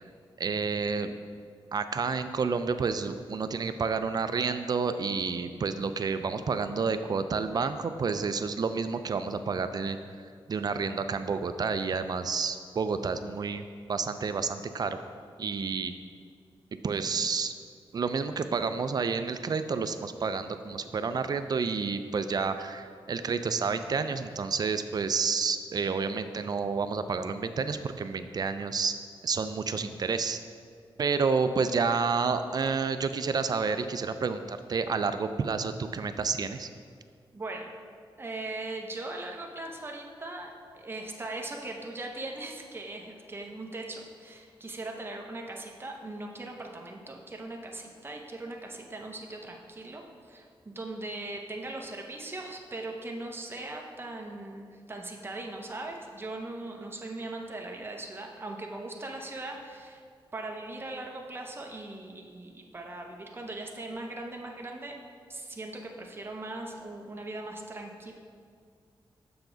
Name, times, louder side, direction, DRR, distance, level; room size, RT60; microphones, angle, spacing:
voice 1, 0.4-1.2 1.7-10.0 10.5-15.0 15.4-15.9 16.8-17.5 17.9-28.9 29.2-30.4 31.0-36.7, right 5 dB, 45° right, 9 dB, 0.4 m, -30 dB
voice 2, 37.3-37.7 38.2-60.0 60.3-65.0 65.3-68.1, right 2 dB, 25° right, 1 dB, 0.8 m, -39 dB
6.9 x 5.9 x 3.9 m, 2.1 s
cardioid pair, 85°, 9 cm